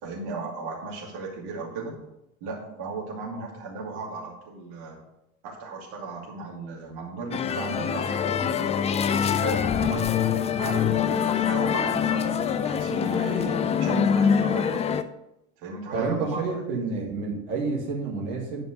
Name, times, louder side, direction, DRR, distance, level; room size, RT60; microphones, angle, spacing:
voice 1, 0.0-2.0 2.4-5.0 5.4-8.7 9.1-10.1 10.6-12.3 12.6-14.8 15.6-16.5 17.0-17.1, right 3 dB, 55° right, -1 dB, 2.6 m, -35 dB
sound 1, 7.3-15.0, left 8 dB, 15° left, 0.3 m, -24 dB
voice 2, 15.9-18.6, right 4 dB, 75° right, -2 dB, 2.1 m, -29 dB
10.5 x 5.0 x 5.0 m, 0.86 s
figure-of-eight pair, 60°, 43 cm